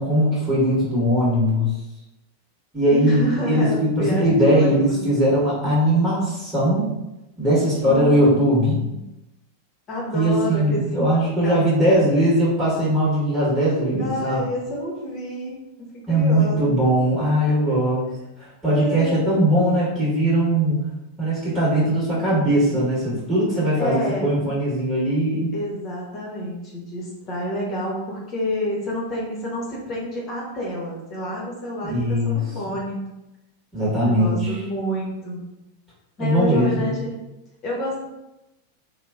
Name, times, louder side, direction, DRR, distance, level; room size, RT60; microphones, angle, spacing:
voice 1, 0.0-1.7 2.7-6.9 7.4-8.8 10.1-14.4 16.1-18.1 18.4-20.8 21.2-25.5 31.8-32.4 33.7-34.6 36.2-36.9, equal, 15° right, -9 dB, 1.5 m, -20 dB
voice 2, 2.9-5.0 7.8-8.4 8.8-9.1 9.9-10.8 11.4-12.1 14.0-15.5 15.8-16.7 17.4-17.6 18.7-19.3 23.8-24.3 25.5-33.1 34.0-35.4 36.2-37.1 37.6-38.0, equal, 30° left, -3 dB, 1.1 m, -29 dB
3.0 x 2.3 x 3.5 m, 0.95 s
figure-of-eight pair, 90°, 0 cm